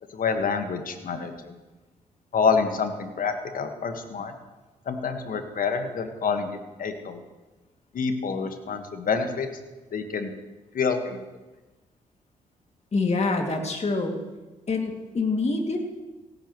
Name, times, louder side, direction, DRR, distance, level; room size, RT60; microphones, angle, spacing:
voice 1, 0.1-1.5 2.3-4.3 4.9-7.2 7.9-9.5 9.9-10.3 10.7-11.2, left 5 dB, 55° left, 7 dB, 1.6 m, -27 dB
voice 2, 12.9-14.2 14.7-16.0, left 3 dB, 40° left, 3 dB, 2.5 m, -26 dB
16.5 x 13.5 x 3.2 m, 1.2 s
hypercardioid pair, 45°, 17 cm